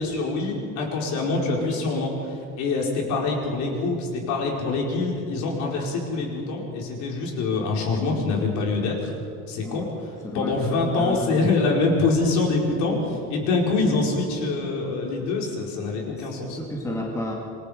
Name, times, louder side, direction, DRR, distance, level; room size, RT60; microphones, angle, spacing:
voice 1, 0.0-9.1 9.5-16.6, left 3 dB, 60° left, -1 dB, 5.0 m, -25 dB
voice 2, 10.2-11.4 16.0-16.3 16.6-17.4, left 1 dB, 10° left, -2 dB, 2.2 m, -32 dB
27.0 x 21.0 x 5.2 m, 2.5 s
cardioid pair, 170°, 32 cm